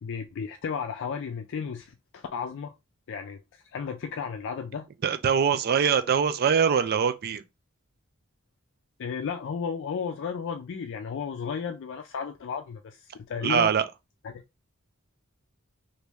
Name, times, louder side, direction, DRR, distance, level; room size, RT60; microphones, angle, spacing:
voice 1, 0.0-2.7 3.1-4.9 9.0-13.7 14.2-14.4, left 6 dB, 60° left, 0.4 m, -34 dB
voice 2, 5.0-7.4 13.4-13.9, right 7 dB, 45° right, 0.4 m, -23 dB
3.1 x 2.6 x 3.4 m
head